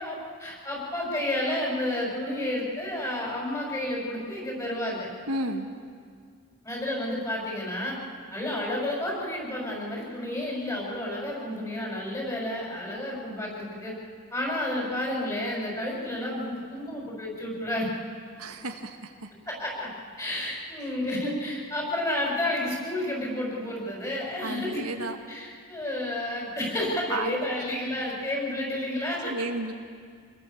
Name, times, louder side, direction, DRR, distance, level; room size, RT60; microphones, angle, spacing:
voice 1, 0.0-5.1 6.6-8.0 8.3-13.9 14.3-17.9 19.4-19.9 20.2-29.3, left 1 dB, 15° left, -2 dB, 6.9 m, -31 dB
voice 2, 5.3-5.7 18.4-19.3 24.4-25.2 27.1-27.4 29.3-29.7, right 2 dB, 80° right, 4 dB, 1.8 m, -32 dB
27.5 x 21.5 x 7.3 m, 2.1 s
head